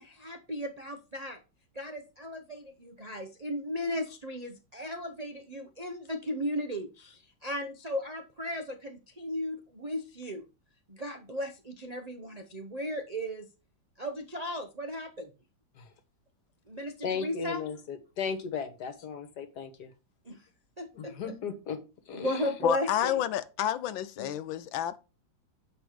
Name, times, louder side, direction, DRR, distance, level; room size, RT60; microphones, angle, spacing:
voice 1, 0.0-1.4 1.7-10.4 10.9-13.5 14.0-15.3 16.7-17.6 20.2-20.5 20.8-21.3 22.1-23.2, equal, 55° right, 0.4 m, -36 dB
voice 2, 17.0-19.9 20.9-21.8 22.1-22.5 24.2-24.3, left 6 dB, 60° left, 1.7 m, -36 dB
voice 3, 22.6-25.0, left 11 dB, 90° left, 1.5 m, -30 dB
7.8 x 5.1 x 5.1 m
omnidirectional pair, 2.1 m